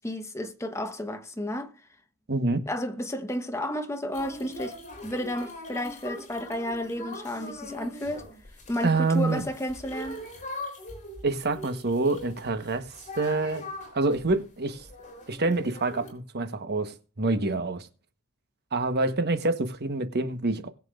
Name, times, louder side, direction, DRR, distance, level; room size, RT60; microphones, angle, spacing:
voice 1, 0.0-1.8 2.7-8.2 8.7-10.2, left 1 dB, 15° left, 1.1 m, -32 dB
voice 2, 2.3-2.6 8.8-9.4 11.2-13.7 13.9-14.9 15.3-17.9 18.7-20.7, right 3 dB, 50° right, 1.2 m, -27 dB
sound 1, 4.1-16.1, left 1 dB, 35° left, 3.8 m, -42 dB
20.5 x 7.5 x 2.5 m
head